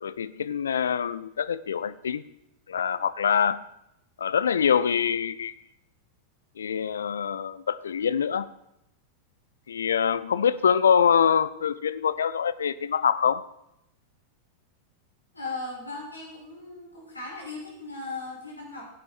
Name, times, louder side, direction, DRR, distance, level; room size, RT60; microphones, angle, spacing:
voice 1, 0.0-2.2 2.7-3.6 4.2-5.5 6.6-8.5 9.7-13.4, left 7 dB, 65° left, 15 dB, 0.6 m, -24 dB
voice 2, 15.3-18.9, left 3 dB, 85° left, -4 dB, 6.1 m, -37 dB
17.0 x 8.6 x 4.4 m, 0.84 s
figure-of-eight pair, 90°, 0 cm